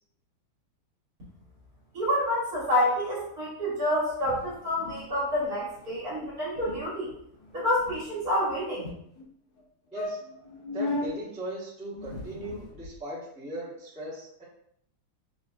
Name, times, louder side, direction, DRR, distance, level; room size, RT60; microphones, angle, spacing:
voice 1, 1.9-7.1 7.5-8.9, left 1 dB, 50° right, -7 dB, 1.9 m, -28 dB
sound 1, 4.2-5.1 5.3-5.5 5.8-6.0 6.3-6.4 6.6-6.8 7.4-8.5 9.2-9.3 9.6-9.7 9.9-11.1 11.9-13.0, left 2 dB, 75° left, 1.6 m, -36 dB
voice 2, 10.7-14.4, right 1 dB, 5° right, -9 dB, 0.9 m, -38 dB
5.4 x 2.7 x 2.5 m, 0.71 s
omnidirectional pair, 2.2 m